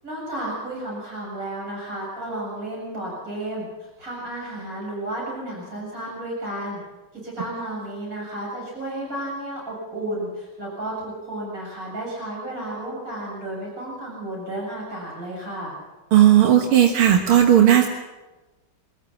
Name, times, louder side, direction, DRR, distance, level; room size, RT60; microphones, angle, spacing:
voice 1, 0.0-6.8 7.2-15.7, right 1 dB, 40° right, -4 dB, 8.1 m, -32 dB
voice 2, 16.1-17.9, right 10 dB, 90° right, 3 dB, 2.3 m, -15 dB
25.0 x 14.0 x 8.4 m, 1.1 s
omnidirectional pair, 2.3 m